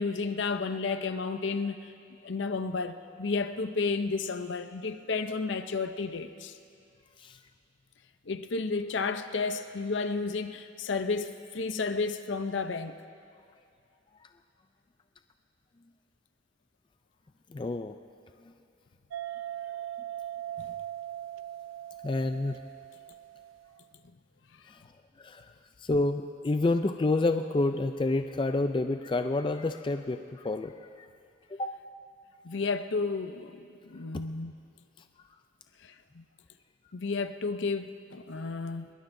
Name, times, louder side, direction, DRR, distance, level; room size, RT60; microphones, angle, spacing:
voice 1, 0.0-1.8 2.2-6.5 8.3-13.0 20.6-20.7 32.4-34.5 35.8-36.2 36.9-38.9, left 4 dB, 65° left, 9 dB, 0.6 m, -32 dB
voice 2, 17.5-17.9 22.0-22.6 24.7-24.8 25.2-25.5 25.8-30.7 31.0-31.1 31.5-31.7, left 2 dB, 25° left, 7 dB, 0.3 m, -28 dB
sound 1, 19.1-23.9, right 12 dB, 75° right, 0.4 m, -40 dB
23.0 x 21.5 x 2.7 m, 2.4 s
head